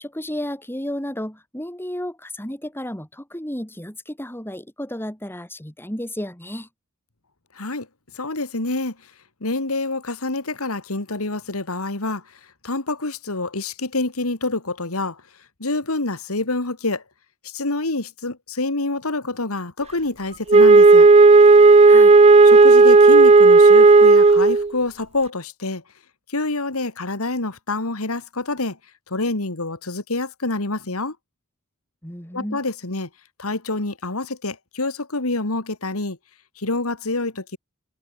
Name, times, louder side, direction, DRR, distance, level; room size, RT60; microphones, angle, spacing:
voice 1, 0.0-6.7 21.9-22.1 32.0-32.6, left 1 dB, 10° left, 7.4 m, -32 dB
voice 2, 7.5-7.9 8.1-9.0 9.4-12.2 12.6-15.2 15.6-17.0 17.4-21.1 22.4-25.8 26.3-28.8 29.1-31.2 32.3-33.1 33.4-36.2 36.6-37.6, left 2 dB, 85° left, 2.6 m, -27 dB
Wind instrument woodwind instrument, 20.5-24.7, right 3 dB, 30° right, 0.5 m, -10 dB
head